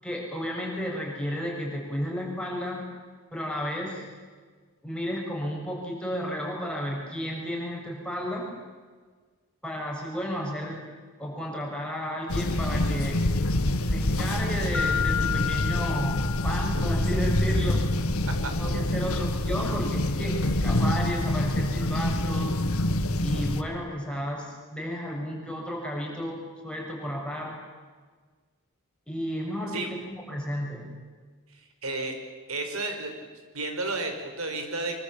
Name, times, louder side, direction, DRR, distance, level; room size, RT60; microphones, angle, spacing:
voice 1, 0.0-2.8 3.3-4.0 4.8-8.5 9.6-10.8 11.2-13.4 13.8-17.9 18.6-22.6 23.2-27.6 29.1-30.8, equal, 5° left, -2 dB, 7.0 m, -33 dB
sound 1, 12.3-23.6, left 1 dB, 80° left, 1.7 m, -26 dB
Mallet percussion, 14.7-17.3, left 9 dB, 60° left, 1.7 m, -31 dB
voice 2, 31.5-32.1 32.5-33.3 33.5-35.0, right 2 dB, 80° right, 5 dB, 5.4 m, -32 dB
25.5 x 24.0 x 8.8 m, 1.5 s
head